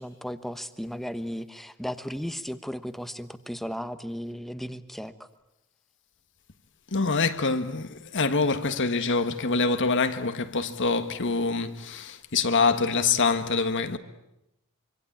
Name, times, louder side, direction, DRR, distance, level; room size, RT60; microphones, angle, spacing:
voice 1, 0.0-5.3, equal, ahead, 1.1 m, -35 dB
voice 2, 6.9-14.0, left 4 dB, 55° left, 1.4 m, -25 dB
25.5 x 25.0 x 8.7 m
head